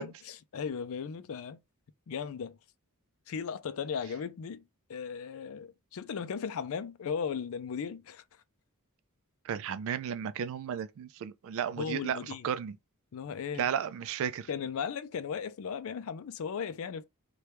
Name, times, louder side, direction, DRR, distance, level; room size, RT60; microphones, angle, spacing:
voice 1, 0.0-1.6 2.1-2.6 3.3-4.6 4.9-8.2 11.8-12.5 13.1-13.7 14.5-17.1, left 6 dB, 65° left, 0.4 m, -36 dB
voice 2, 9.5-12.2 12.4-12.8 13.6-14.5, right 8 dB, 60° right, 0.3 m, -33 dB
2.9 x 2.3 x 3.3 m
head